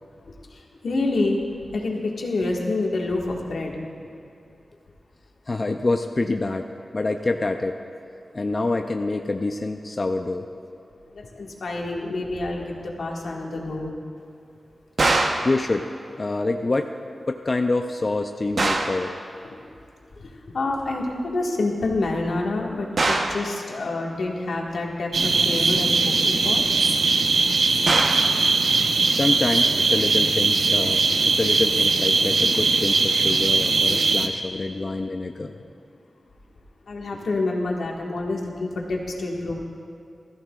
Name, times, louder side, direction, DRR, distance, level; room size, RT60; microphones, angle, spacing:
voice 1, 0.5-1.4 1.7-3.8 11.1-13.9 15.3-15.4 20.2-20.3 20.5-26.7 34.7-34.9 36.9-39.6, left 2 dB, 80° left, -1 dB, 1.7 m, -27 dB
voice 2, 5.5-6.7 6.9-7.8 8.3-10.5 15.4-15.9 16.2-16.9 17.3-19.2 29.1-35.5, left 2 dB, 40° left, 4 dB, 0.5 m, -26 dB
sound 1, 15.0-15.5 18.6-19.0 23.0-23.4 27.9-28.3, right 2 dB, 60° right, 0.9 m, -22 dB
sound 2, 25.1-34.3, right 4 dB, 85° right, 0.7 m, -20 dB
20.0 x 13.5 x 2.4 m, 2.5 s
wide cardioid pair, 95°, 0 cm